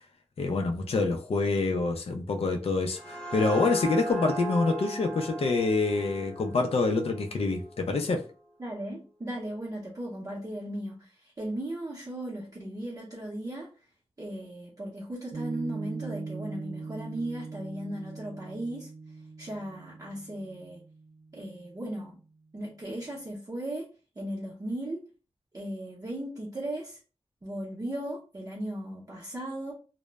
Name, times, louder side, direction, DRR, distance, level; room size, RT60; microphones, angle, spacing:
voice 1, 0.4-8.2, left 3 dB, 65° left, 0.4 m, -26 dB
sound 1, 2.7-8.1, right 2 dB, 10° left, 0.6 m, -38 dB
voice 2, 8.6-13.7 14.2-18.9 19.4-20.8 21.3-22.2 22.5-23.9 24.2-25.1 25.5-27.0 27.4-29.7, right 1 dB, 35° right, 0.6 m, -37 dB
Piano, 15.3-22.0, right 4 dB, 85° right, 0.6 m, -41 dB
2.0 x 2.0 x 3.3 m
wide cardioid pair, 95°, 11 cm